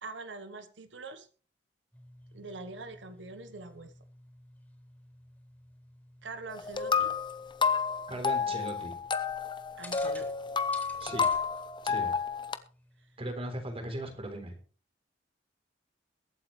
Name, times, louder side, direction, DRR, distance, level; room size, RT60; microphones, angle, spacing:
voice 1, 0.0-1.3 2.3-3.9 6.2-7.1 8.5-8.6 9.7-10.3, right 3 dB, 90° right, 10 dB, 1.2 m, -44 dB
sound 1, 1.9-13.3, left 1 dB, 10° left, 3.9 m, -54 dB
sound 2, 6.5-12.6, left 5 dB, 25° left, 0.8 m, -31 dB
voice 2, 8.1-9.0 11.0-11.3 11.8-12.1 13.2-14.5, right 1 dB, 35° right, 4 dB, 3.8 m, -38 dB
22.5 x 8.6 x 3.3 m, 0.38 s
head